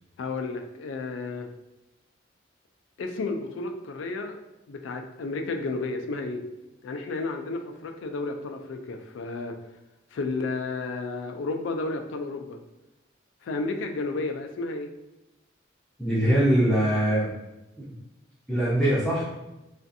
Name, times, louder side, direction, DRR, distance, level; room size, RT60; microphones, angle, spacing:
voice 1, 0.2-1.5 3.0-4.3 4.7-6.4 6.8-9.6 10.1-12.6 13.4-14.9, left 3 dB, 80° left, 5 dB, 0.4 m, -32 dB
voice 2, 16.0-17.3 17.8-18.0 18.5-19.3, right 1 dB, 5° left, -10 dB, 0.5 m, -22 dB
2.5 x 2.3 x 2.6 m, 0.95 s
head